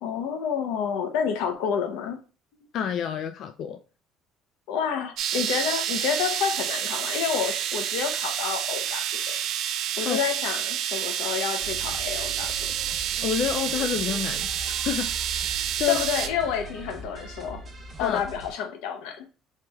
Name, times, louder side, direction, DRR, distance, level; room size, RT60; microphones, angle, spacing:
voice 1, 0.0-2.2 4.7-9.2 10.0-12.7 15.9-17.7 18.0-19.3, left 7 dB, 90° left, 0.7 m, -29 dB
voice 2, 2.7-3.8 10.1-10.2 13.2-14.5 14.8-15.5 15.7-16.1 18.0-18.2, left 9 dB, 55° left, 0.3 m, -28 dB
sound 1, 5.2-16.3, right 10 dB, 65° right, 0.4 m, -29 dB
sound 2, 11.6-18.5, right 2 dB, 25° right, 1.2 m, -40 dB
4.6 x 2.9 x 2.3 m
cardioid pair, 135°, 0 cm